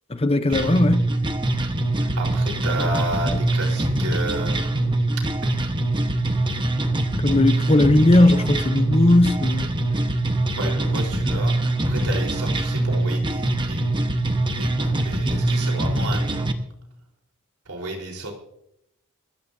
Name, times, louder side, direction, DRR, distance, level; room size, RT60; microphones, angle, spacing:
voice 1, 0.1-1.0 7.2-9.7, left 1 dB, 25° left, 0.7 m, -18 dB
sound 1, 0.5-16.5, right 1 dB, 20° right, 1.1 m, -23 dB
voice 2, 2.0-4.9 5.6-5.7 10.6-13.9 14.5-16.5 17.7-18.3, right 2 dB, 85° right, 4.0 m, -32 dB
24.5 x 14.0 x 2.7 m
head